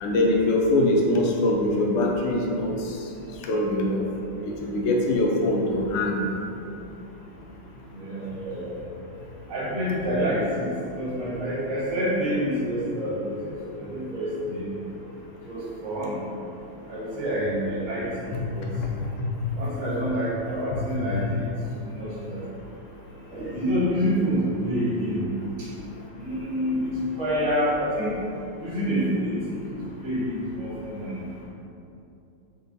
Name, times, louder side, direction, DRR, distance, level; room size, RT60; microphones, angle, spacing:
voice 1, 0.0-2.7 3.4-4.0 4.4-6.3 18.3-18.9 19.4-19.5 21.1-21.2, left 1 dB, 90° left, -1 dB, 1.6 m, -23 dB
voice 2, 7.9-8.8 9.5-14.7 15.5-16.1 16.9-18.7 19.6-21.5 21.8-22.4 23.3-25.3 25.6-25.7 26.2-28.1 28.6-31.5, equal, 70° right, -8 dB, 1.9 m, -28 dB
4.7 x 3.6 x 2.6 m, 2.7 s
omnidirectional pair, 2.4 m